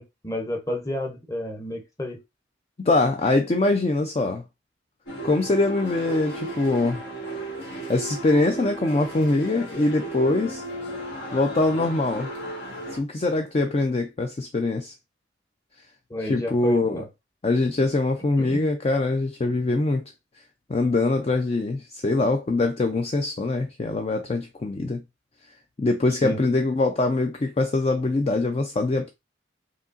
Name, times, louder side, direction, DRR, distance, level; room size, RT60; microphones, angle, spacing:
voice 1, 0.0-2.2 16.1-17.1 18.4-18.7 26.2-26.4, left 1 dB, 15° left, 0.8 m, -31 dB
voice 2, 2.8-4.4 5.2-7.0 7.9-10.6 11.3-12.3 13.0-14.9 16.2-17.0 17.4-20.0 20.7-25.0 25.8-29.1, left 2 dB, 30° left, 0.4 m, -23 dB
sound 1, 5.1-13.0, right 1 dB, 75° left, 1.6 m, -35 dB
4.9 x 2.8 x 2.5 m
head